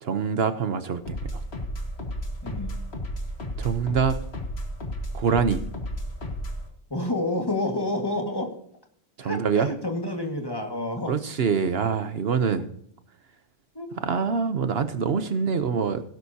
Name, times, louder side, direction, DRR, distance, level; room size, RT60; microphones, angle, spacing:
voice 1, 0.0-1.4 3.6-4.2 5.1-5.6 9.2-9.7 11.1-12.7 14.0-16.0, right 6 dB, 65° right, 10 dB, 1.0 m, -25 dB
sound 1, 1.1-6.7, equal, 70° left, 2.1 m, -33 dB
voice 2, 2.4-2.8 6.9-8.6 9.2-11.1 13.8-13.9, left 1 dB, 20° left, 2 dB, 1.8 m, -29 dB
17.0 x 11.0 x 2.8 m, 0.67 s
omnidirectional pair, 1.1 m